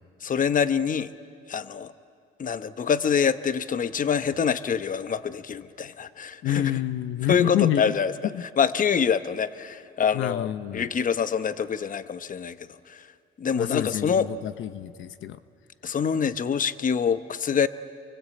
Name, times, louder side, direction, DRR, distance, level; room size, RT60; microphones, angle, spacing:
voice 1, 0.2-1.1 1.5-1.9 2.4-6.8 7.3-8.1 8.6-13.1 13.4-14.3 15.8-17.7, left 7 dB, 40° left, 12 dB, 0.9 m, -25 dB
voice 2, 6.4-7.9 8.3-8.4 10.1-10.9 13.5-15.4, left 11 dB, 80° left, 12 dB, 0.8 m, -28 dB
29.0 x 23.5 x 8.5 m, 2.3 s
cardioid pair, 90°, 20 cm